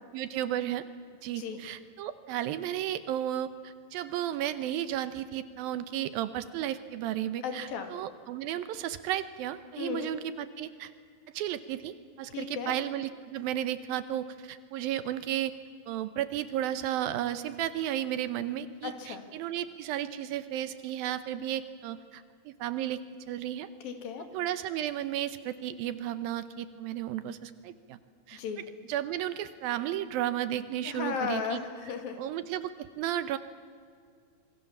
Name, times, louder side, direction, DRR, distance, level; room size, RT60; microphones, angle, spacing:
voice 1, 0.1-0.9 1.2-10.9 11.3-15.5 15.9-23.0 23.3-23.7 24.3-28.0 28.3-28.4 28.9-31.6 32.2-33.4, right 11 dB, 80° right, 12 dB, 2.6 m, -33 dB
voice 2, 7.4-7.9 9.8-10.1 12.3-12.7 18.8-19.2 23.8-24.3 28.3-28.6 30.9-32.2, left 6 dB, 70° left, 6 dB, 4.0 m, -35 dB
27.5 x 22.5 x 7.3 m, 2.1 s
omnidirectional pair, 4.3 m